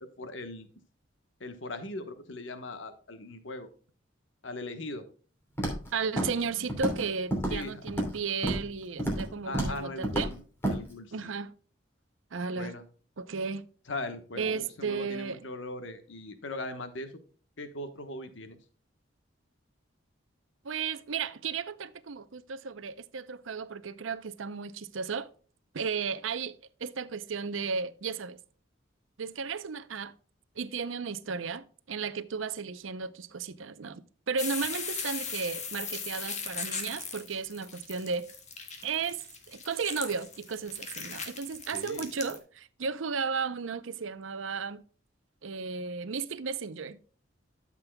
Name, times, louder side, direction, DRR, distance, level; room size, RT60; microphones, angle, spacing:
voice 1, 0.2-0.7 1.4-3.7 4.4-5.0 7.5-7.8 9.4-10.4 10.7-11.3 12.5-12.8 13.9-17.1 17.6-18.6 41.7-42.1, left 2 dB, 75° left, 1.2 m, -39 dB
Walk footsteps, 5.6-5.9 6.2-6.4 6.7-7.1 7.3-8.1 8.4-8.7 9.0-9.3 9.5-9.8 10.0-10.3 10.6-10.8, right 1 dB, 10° left, 2.9 m, -29 dB
voice 2, 5.9-10.3 11.1-11.5 12.3-12.7 13.2-13.7 14.4-15.4 20.6-25.3 25.7-26.5 26.8-28.4 29.2-30.1 30.6-38.3 38.8-39.2 39.5-44.8 45.4-47.0, right 5 dB, 85° right, 0.6 m, -34 dB
sound 1, 34.4-42.4, left 5 dB, 35° left, 1.7 m, -38 dB
12.5 x 7.4 x 2.2 m
head